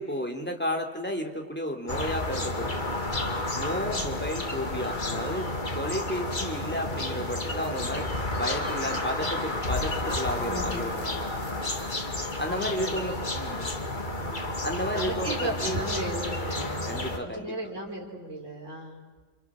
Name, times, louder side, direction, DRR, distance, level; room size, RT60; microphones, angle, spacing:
voice 1, 0.0-2.8 3.5-8.1 8.4-11.3 12.4-13.7 14.6-15.3 15.6-15.8 16.9-17.8, equal, 5° left, 3 dB, 3.1 m, -33 dB
sound 1, 1.9-17.2, left 2 dB, 35° left, 2.5 m, -31 dB
voice 2, 10.1-11.1 12.4-13.0 14.1-14.4 14.9-19.0, right 1 dB, 55° right, 0 dB, 5.3 m, -36 dB
29.5 x 27.0 x 7.6 m, 1.4 s
omnidirectional pair, 1.5 m